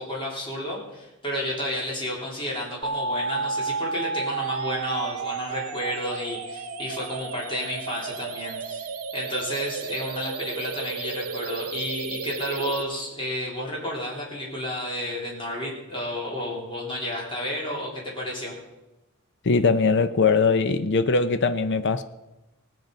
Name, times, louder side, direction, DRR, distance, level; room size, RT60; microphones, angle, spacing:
voice 1, 0.0-18.5, left 1 dB, 25° left, -3 dB, 3.4 m, -31 dB
sound 1, 2.8-12.8, right 4 dB, 80° right, 0.9 m, -32 dB
voice 2, 19.4-22.0, left 4 dB, 55° left, 10 dB, 0.6 m, -21 dB
18.0 x 9.2 x 5.2 m, 1.0 s
head